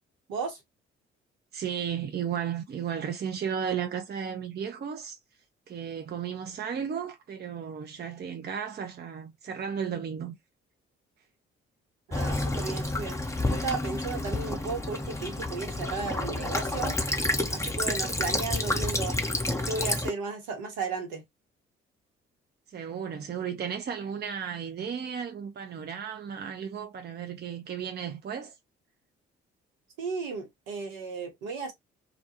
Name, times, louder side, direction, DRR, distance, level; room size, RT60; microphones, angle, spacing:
voice 1, 0.3-0.6 12.1-13.2 13.5-17.0 17.5-19.2 19.6-21.2 30.0-31.7, right 4 dB, 65° right, 1.1 m, -34 dB
voice 2, 1.5-5.2 5.7-10.4 22.7-28.5, right 7 dB, 30° right, 0.6 m, -34 dB
Child speech kid speaking / Bird vocalization bird call bird song / Stream, 12.1-20.1, left 2 dB, 10° left, 0.8 m, -29 dB
2.4 x 2.2 x 2.9 m
figure-of-eight pair, 40°, 33 cm